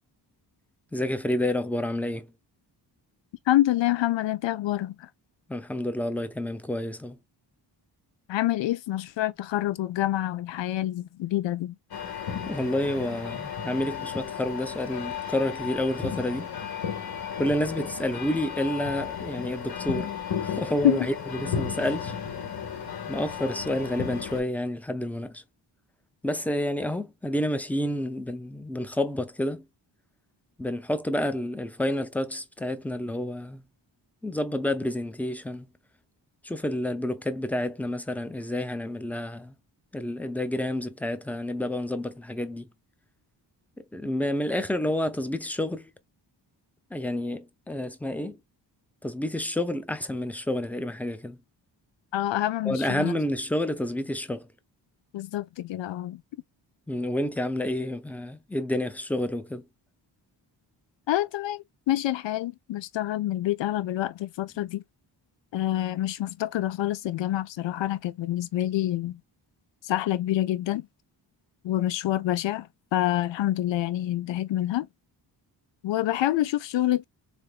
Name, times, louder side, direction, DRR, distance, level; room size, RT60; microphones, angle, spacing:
voice 1, 0.9-2.3 5.5-7.2 12.5-16.5 17.4-20.1 20.4-22.1 23.1-25.4 26.2-29.6 30.6-33.6 34.2-35.7 36.4-39.5 39.9-42.7 43.8-45.9 46.9-48.4 49.0-51.4 52.7-54.5 56.9-59.6, left 1 dB, 5° left, 0.5 m, -29 dB
voice 2, 3.5-5.1 8.3-11.7 20.8-21.0 52.1-53.2 55.1-56.2 61.1-64.8 65.5-69.2 69.8-70.9 71.6-74.9 75.8-77.0, left 14 dB, 85° left, 0.6 m, -27 dB
sound 1, 11.9-24.4, left 7 dB, 55° left, 1.9 m, -34 dB
3.8 x 3.4 x 2.3 m
wide cardioid pair, 140°, 44 cm